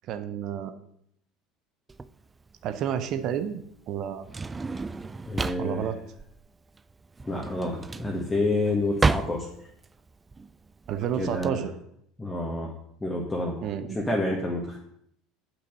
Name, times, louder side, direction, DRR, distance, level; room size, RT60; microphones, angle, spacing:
voice 1, 0.1-0.7 2.6-3.6 3.9-4.2 5.6-6.0 10.9-11.7 13.6-14.0, right 9 dB, 45° right, 10 dB, 0.8 m, -30 dB
Drawer open or close, 1.9-11.5, right 3 dB, 20° right, 0.4 m, -32 dB
voice 2, 5.3-5.9 7.3-9.5 11.2-11.6 12.2-12.7 13.0-13.5 13.9-14.8, left 2 dB, 10° left, -1 dB, 1.6 m, -28 dB
8.5 x 5.9 x 6.3 m, 0.70 s
figure-of-eight pair, 70°, 0 cm